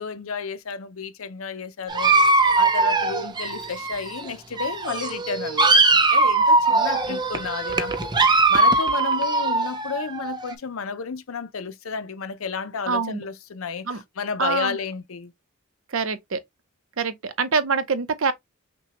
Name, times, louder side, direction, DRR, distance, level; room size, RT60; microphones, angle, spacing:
voice 1, 0.0-2.1 2.6-8.1 8.5-13.9 14.2-15.3, left 5 dB, 80° left, 0.6 m, -32 dB
Dog, 1.9-4.3 4.6-10.5, right 3 dB, 20° right, 0.6 m, -20 dB
voice 2, 12.9-13.2 13.8-14.0 14.4-14.8 15.9-16.4 17.0-18.3, right 5 dB, 75° right, 0.7 m, -25 dB
6.0 x 2.3 x 2.9 m
head